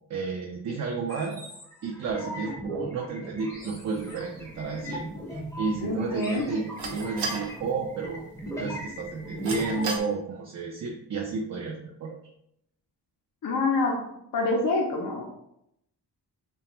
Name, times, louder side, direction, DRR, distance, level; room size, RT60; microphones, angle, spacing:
voice 1, 0.1-1.4 1.8-5.0 5.6-8.3 8.6-12.2, right 4 dB, 45° right, 1 dB, 0.4 m, -31 dB
sound 1, 1.1-10.0, equal, 10° left, 0.6 m, -39 dB
sound 2, 3.6-10.0, right 3 dB, 80° right, 0.7 m, -40 dB
voice 2, 5.8-6.5 13.4-14.0 14.3-15.3, left 3 dB, 55° left, -1 dB, 0.5 m, -26 dB
2.4 x 2.2 x 2.9 m, 0.77 s
cardioid pair, 75°, 41 cm